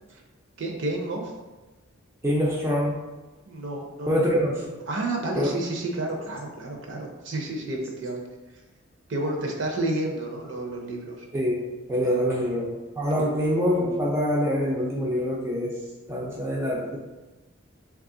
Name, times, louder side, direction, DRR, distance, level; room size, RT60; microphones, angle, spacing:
voice 1, 0.6-1.3 3.5-4.2 4.9-8.3 9.1-11.3 12.0-12.4 13.2-13.3, right 2 dB, 60° right, 0 dB, 0.6 m, -31 dB
voice 2, 2.2-3.0 4.1-4.7 5.4-5.5 11.3-12.6 13.0-15.7 16.1-17.0, equal, 10° right, -4 dB, 0.4 m, -25 dB
3.2 x 2.3 x 3.7 m, 1.2 s
head